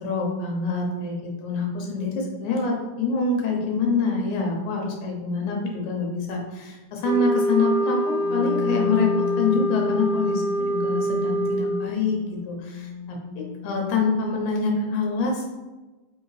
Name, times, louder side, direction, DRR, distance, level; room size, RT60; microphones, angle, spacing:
voice 1, 0.0-15.5, left 3 dB, 90° left, 0 dB, 2.4 m, -26 dB
sound 1, 7.0-11.9, equal, 85° right, 2.1 m, -25 dB
Wind instrument woodwind instrument, 8.2-13.9, left 8 dB, 70° left, 1.6 m, -34 dB
5.5 x 3.0 x 3.2 m, 1.1 s
omnidirectional pair, 3.4 m